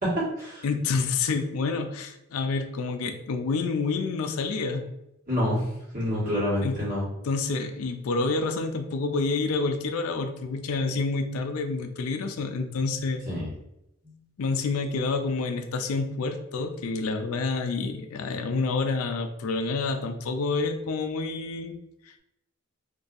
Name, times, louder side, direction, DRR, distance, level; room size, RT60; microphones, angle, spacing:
voice 1, 0.0-0.6 5.3-5.6 5.9-7.0 13.3-13.5, equal, 40° right, -7 dB, 1.5 m, -27 dB
voice 2, 0.6-4.8 6.6-6.8 7.2-13.2 14.4-21.8, left 4 dB, 80° left, 6 dB, 0.4 m, -28 dB
4.0 x 2.6 x 2.5 m, 0.84 s
head